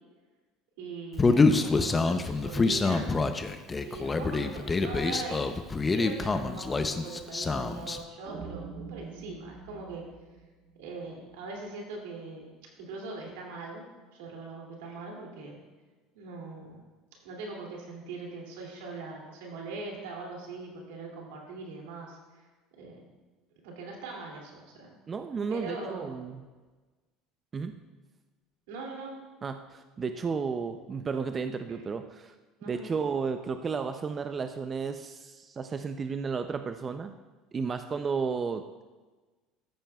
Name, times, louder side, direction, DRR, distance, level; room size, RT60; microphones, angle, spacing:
voice 1, 0.8-3.2 3.8-5.5 5.9-10.0 10.8-12.4 12.8-13.8 14.1-15.6 16.1-16.8 17.2-22.4 22.7-23.0 23.6-25.0 25.5-26.2 28.7-29.2 31.7-31.8 32.6-32.9, right 3 dB, 90° right, -1 dB, 2.5 m, -41 dB
Human voice, 1.2-8.0, left 3 dB, 20° left, 0.6 m, -26 dB
sound 1, 8.3-11.4, right 5 dB, 60° right, 1.1 m, -44 dB
voice 2, 25.1-26.4 27.5-27.8 29.4-32.3 32.7-37.2 37.5-38.8, right 5 dB, 30° right, 8 dB, 0.4 m, -33 dB
14.0 x 8.8 x 2.3 m, 1.3 s
supercardioid pair, 110°, 0 cm